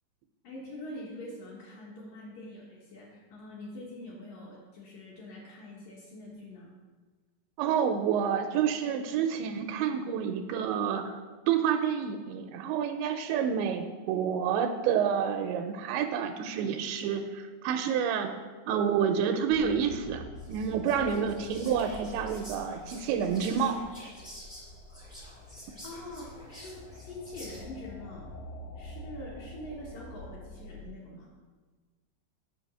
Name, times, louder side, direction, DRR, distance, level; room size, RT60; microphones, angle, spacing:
voice 1, 0.4-6.7 25.8-28.3 28.8-31.3, left 1 dB, 65° left, -4 dB, 2.4 m, -44 dB
voice 2, 7.6-11.1 11.5-18.3 18.7-23.8, right 7 dB, 85° right, 6 dB, 2.7 m, -29 dB
sound 1, 19.5-30.8, left 1 dB, 80° left, 2.9 m, -46 dB
Whispering, 20.4-27.9, equal, 20° left, 0.8 m, -49 dB
8.6 x 6.8 x 5.3 m, 1.4 s
omnidirectional pair, 5.3 m